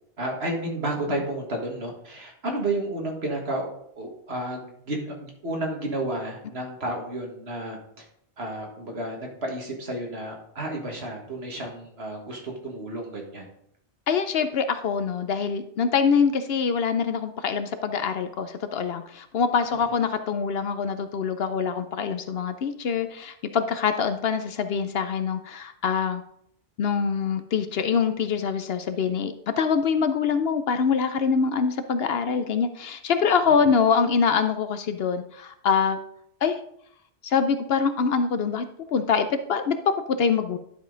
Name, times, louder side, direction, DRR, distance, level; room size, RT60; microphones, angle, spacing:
voice 1, 0.2-3.7 4.0-8.1 8.4-13.5 33.6-33.7, right 1 dB, 65° right, 1 dB, 1.9 m, -31 dB
voice 2, 14.1-26.2 26.8-36.0 36.4-36.6 37.2-40.6, left 6 dB, 65° left, 9 dB, 0.8 m, -24 dB
11.0 x 5.2 x 3.8 m, 0.70 s
omnidirectional pair, 1.2 m